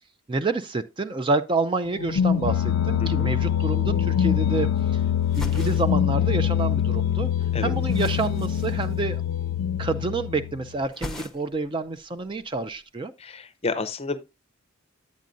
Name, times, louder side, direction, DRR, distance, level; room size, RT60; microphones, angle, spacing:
voice 1, 0.3-5.0 5.4-7.3 7.6-9.2 9.8-13.1, right 3 dB, 25° right, 0.4 m, -28 dB
sound 1, 1.9-10.7, left 9 dB, 85° left, 0.4 m, -24 dB
voice 2, 3.0-3.3 7.5-7.7 13.2-14.2, left 3 dB, 30° left, 0.6 m, -30 dB
sound 2, 3.7-3.8 4.0-4.9 5.2-6.8 7.1-9.6 9.9-10.4 10.7-11.7 12.0-12.8, left 1 dB, ahead, 0.8 m, -41 dB
10.5 x 8.3 x 2.5 m
head